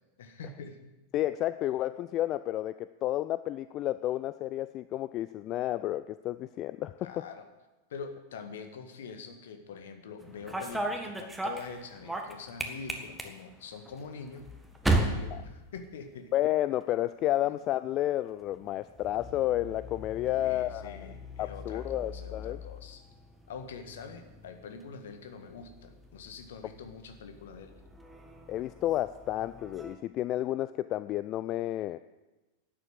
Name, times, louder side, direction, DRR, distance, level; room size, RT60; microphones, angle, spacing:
voice 1, 0.2-0.9 7.0-7.4 7.9-14.5 14.8-16.3 20.3-23.0 23.5-27.7, left 5 dB, 60° left, 7 dB, 1.6 m, -44 dB
voice 2, 1.1-7.2 16.3-21.1 21.4-22.6 28.5-32.0, left 14 dB, 35° left, 15 dB, 0.4 m, -31 dB
sound 1, 10.2-16.4 16.7-17.2 18.3-29.9, right 2 dB, 5° right, 1.6 m, -38 dB
11.5 x 8.8 x 7.9 m, 1.1 s
figure-of-eight pair, 90°, 0 cm